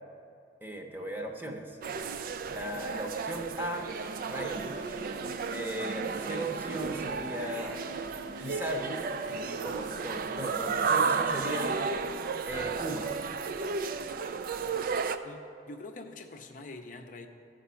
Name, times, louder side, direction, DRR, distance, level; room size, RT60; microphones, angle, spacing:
voice 1, 0.6-1.8 2.5-3.9 4.2-4.8 5.5-7.8 8.4-9.0 9.4-11.7 12.4-13.1, right 1 dB, 10° right, 2 dB, 0.8 m, -36 dB
sound 1, 1.8-15.2, right 5 dB, 50° right, 0.4 m, -33 dB
sound 2, 3.8-10.7, right 1 dB, 85° right, 1.1 m, -46 dB
voice 2, 15.2-17.3, left 2 dB, 45° left, 4 dB, 0.6 m, -45 dB
14.0 x 5.2 x 5.6 m, 2.6 s
head